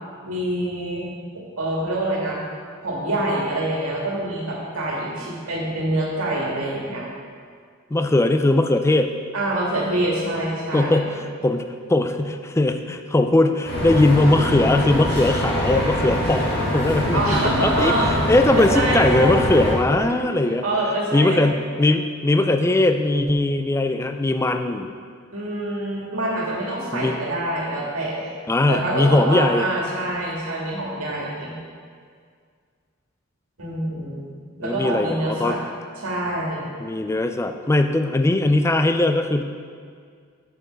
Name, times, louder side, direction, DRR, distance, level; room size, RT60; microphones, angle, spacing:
voice 1, 0.2-1.1 1.3-2.4 2.8-7.1 9.3-11.1 17.1-18.1 18.5-19.4 20.0-20.1 20.6-21.5 25.3-28.3 28.7-31.5 33.6-34.3 34.6-35.6 36.0-36.8, right 1 dB, 85° right, -4 dB, 2.0 m, -26 dB
voice 2, 7.9-9.1 10.7-11.6 11.9-17.9 18.3-20.6 21.1-24.9 26.9-27.2 28.5-29.7 34.6-35.6 36.8-39.4, left 2 dB, 15° left, 7 dB, 0.3 m, -20 dB
sound 1, 13.7-19.7, equal, 50° left, 1.8 m, -24 dB
6.7 x 6.3 x 5.1 m, 2.1 s
head